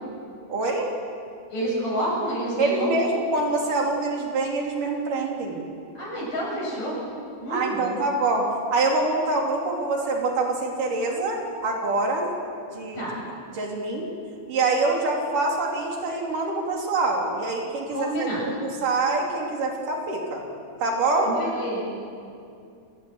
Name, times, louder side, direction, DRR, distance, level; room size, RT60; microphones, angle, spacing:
voice 1, 0.5-0.9 2.6-5.6 7.5-12.3 12.7-13.0 13.5-14.1 14.5-20.4 20.8-21.3, right 3 dB, 90° right, 0 dB, 4.7 m, -25 dB
voice 2, 1.5-3.1 5.9-7.0 7.4-8.0 13.0-13.1 17.9-18.5 21.3-21.8, right 1 dB, 90° left, -4 dB, 9.8 m, -28 dB
28.0 x 19.0 x 8.0 m, 2.5 s
omnidirectional pair, 3.6 m